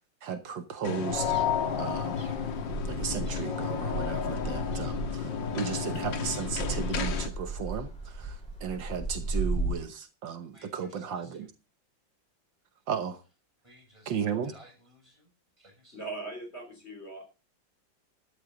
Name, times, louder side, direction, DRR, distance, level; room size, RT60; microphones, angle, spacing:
voice 1, 0.2-1.3 1.8-2.2 2.9-5.3 5.5-8.4 8.6-11.5 12.9-13.2 14.1-14.5, right 7 dB, 75° right, 1.8 m, -35 dB
sound 1, 0.8-7.3, left 7 dB, 75° left, 2.1 m, -32 dB
sound 2, 1.1-9.7, right 2 dB, 5° left, 7.6 m, -36 dB
voice 2, 10.5-11.5 13.6-14.2 14.4-15.3 15.6-16.0, equal, 15° right, 6.1 m, -56 dB
voice 3, 15.9-17.2, right 2 dB, 35° left, 3.4 m, -40 dB
13.5 x 11.0 x 3.9 m
omnidirectional pair, 2.1 m